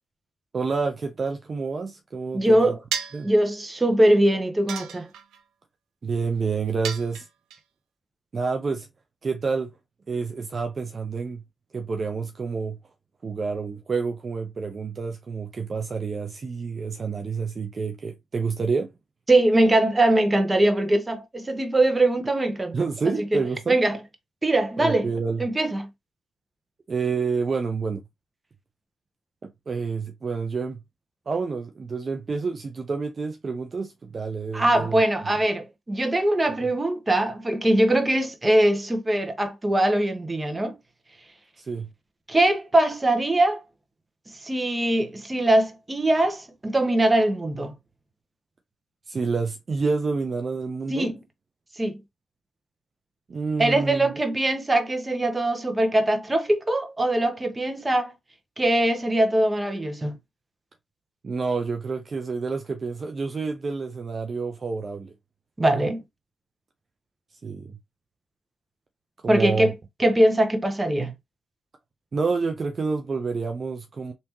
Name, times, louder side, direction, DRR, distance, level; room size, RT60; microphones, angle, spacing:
voice 1, 0.5-2.5 3.1-3.3 6.0-7.3 8.3-8.9 9.2-9.7 10.1-11.4 11.7-12.8 13.2-18.9 22.7-23.8 24.8-25.4 26.9-28.0 29.7-30.8 31.3-35.3 41.6-41.9 49.1-51.1 53.3-54.2 61.2-65.1 67.4-67.8 69.2-69.7 72.1-74.1, right 4 dB, 50° right, 0.6 m, -28 dB
voice 2, 2.3-2.8 3.2-5.1 19.3-22.8 23.3-23.4 23.7-24.0 24.4-25.1 25.4-25.9 34.5-40.8 42.3-43.6 44.4-47.7 50.9-51.2 51.8-52.0 53.6-58.1 58.6-60.2 65.6-66.0 69.3-69.7 70.0-71.1, right 1 dB, 25° right, 1.0 m, -22 dB
sound 1, 2.9-3.3 4.7-5.4 6.8-7.6, right 8 dB, 90° right, 0.4 m, -32 dB
3.4 x 2.8 x 3.0 m
supercardioid pair, 55°, 0 cm